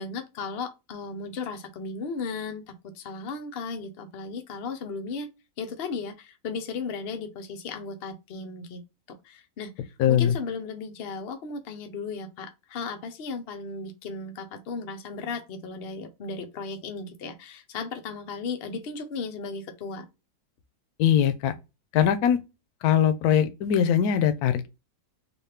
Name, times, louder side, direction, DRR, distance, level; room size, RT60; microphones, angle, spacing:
voice 1, 0.0-5.3 5.6-8.8 9.2-20.1, left 4 dB, 90° left, 0.5 m, -35 dB
voice 2, 10.0-10.3 21.0-21.5 21.9-22.4 22.8-24.7, left 9 dB, 70° left, 0.9 m, -21 dB
4.0 x 2.3 x 3.3 m
omnidirectional pair, 2.0 m